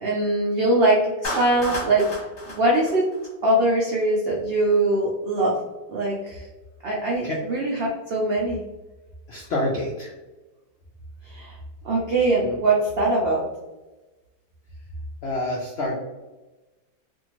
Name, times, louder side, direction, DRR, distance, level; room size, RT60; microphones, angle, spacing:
voice 1, 0.0-3.0 3.4-5.5 5.9-6.5 6.8-8.6 11.3-11.6 11.8-13.4, right 2 dB, 85° right, -4 dB, 0.5 m, -22 dB
Clapping, 1.2-3.6, left 1 dB, 50° left, 1.0 m, -32 dB
voice 2, 9.3-10.1 15.2-16.0, left 1 dB, 80° left, -3 dB, 0.5 m, -27 dB
2.7 x 2.6 x 2.9 m, 1.1 s
omnidirectional pair, 1.7 m